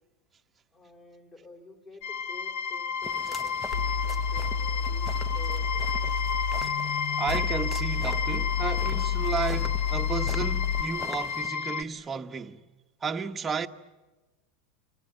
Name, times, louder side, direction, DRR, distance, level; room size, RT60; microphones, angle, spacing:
voice 1, 0.7-5.9, left 3 dB, 25° left, 4.2 m, -50 dB
sound 1, 2.0-11.8, left 6 dB, 55° left, 1.4 m, -32 dB
sound 2, 3.0-11.5, left 1 dB, 5° left, 0.9 m, -44 dB
sound 3, 3.7-10.8, left 7 dB, 75° left, 1.6 m, -30 dB
voice 2, 7.2-12.6 13.0-13.7, right 6 dB, 15° right, 1.2 m, -33 dB
29.5 x 26.0 x 7.7 m
supercardioid pair, 165°, 0 cm